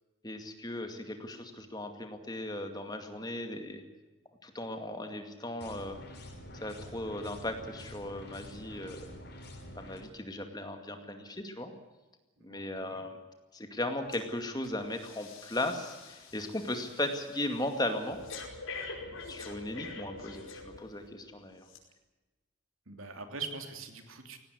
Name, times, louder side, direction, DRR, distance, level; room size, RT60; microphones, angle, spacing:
voice 1, 0.2-3.8 4.4-6.0 6.6-9.1 9.7-11.7 12.4-13.2 13.5-18.2 19.3-21.7, left 1 dB, 20° left, 6 dB, 2.2 m, -37 dB
sound 1, 5.6-10.0, left 1 dB, 50° left, 6.0 m, -47 dB
voice 2, 12.5-13.0 22.9-24.4, right 4 dB, 85° right, 6 dB, 3.1 m, -42 dB
Breathing, 14.1-14.3 14.6-21.1 21.6-21.8, left 4 dB, 80° left, 5.4 m, -46 dB
18.0 x 17.5 x 9.7 m, 1.2 s
head